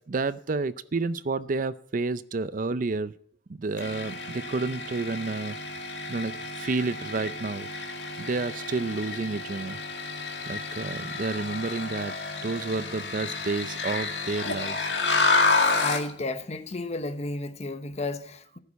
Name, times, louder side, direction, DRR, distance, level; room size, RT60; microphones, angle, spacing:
voice 1, 0.1-3.1 3.5-5.6 6.1-6.3 6.6-7.7 8.2-9.8 10.5-12.2 12.4-14.9, right 3 dB, 50° right, 0.5 m, -30 dB
sound 1, 3.8-16.1, left 3 dB, 70° left, 2.2 m, -30 dB
voice 2, 15.8-18.6, left 2 dB, 40° left, 1.0 m, -32 dB
14.5 x 7.0 x 8.2 m
head